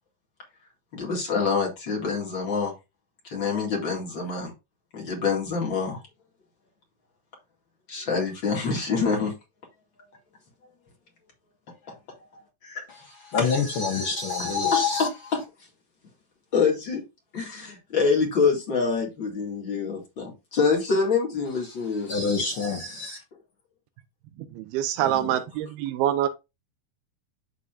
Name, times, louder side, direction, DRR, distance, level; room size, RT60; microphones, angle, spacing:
voice 1, 0.9-2.7 3.2-4.5 4.9-6.0 7.9-9.3 11.9-12.0 12.6-12.8 13.4-13.5 14.7-15.4 16.5-17.0 17.3-22.1 25.2-25.3, left 5 dB, 35° left, 2.3 m, -26 dB
voice 2, 13.3-15.1 22.1-23.2, left 5 dB, 75° left, 1.2 m, -26 dB
voice 3, 24.4-26.3, right 11 dB, 90° right, 2.8 m, -26 dB
12.5 x 4.1 x 2.5 m
omnidirectional pair, 4.3 m